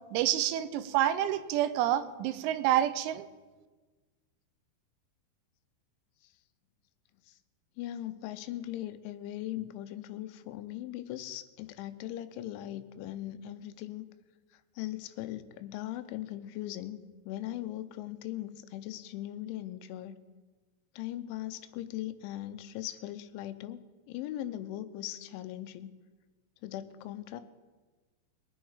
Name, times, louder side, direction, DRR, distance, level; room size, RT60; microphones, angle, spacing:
voice 1, 0.1-3.3, right 12 dB, 90° right, 12 dB, 3.2 m, -28 dB
voice 2, 7.8-14.1 14.5-17.0 17.2-20.2 21.0-23.8 24.1-26.0 26.6-27.4, left 13 dB, 90° left, 11 dB, 3.0 m, -39 dB
22.5 x 8.7 x 4.8 m, 1.3 s
omnidirectional pair, 5.4 m